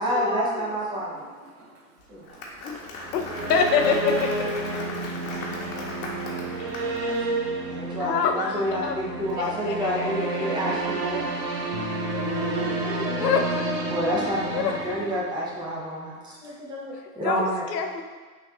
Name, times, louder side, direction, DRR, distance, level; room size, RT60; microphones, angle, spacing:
voice 1, 0.0-1.1 2.1-2.3 7.6-11.3 12.1-13.6 13.9-17.6, equal, 10° right, -5 dB, 0.6 m, -29 dB
voice 2, 0.9-4.0 4.7-5.0 5.4-7.9 9.4-9.8 10.6-10.7 16.7-17.1, right 2 dB, 45° right, -2 dB, 1.0 m, -50 dB
Applause, 2.0-7.2, left 2 dB, 60° left, 1.0 m, -37 dB
sound 1, 2.9-15.7, right 3 dB, 85° right, 0.9 m, -31 dB
voice 3, 3.5-4.6 5.0-5.3 8.0-9.0 9.4-10.6 12.1-12.7 13.2-13.7 14.5-15.0 17.2-17.4 17.7-18.0, left 6 dB, 80° left, 4 dB, 0.7 m, -26 dB
sound 2, 11.7-15.3, left 1 dB, 40° left, 0.5 m, -36 dB
6.3 x 2.6 x 2.3 m, 1.4 s
hypercardioid pair, 115°, 48 cm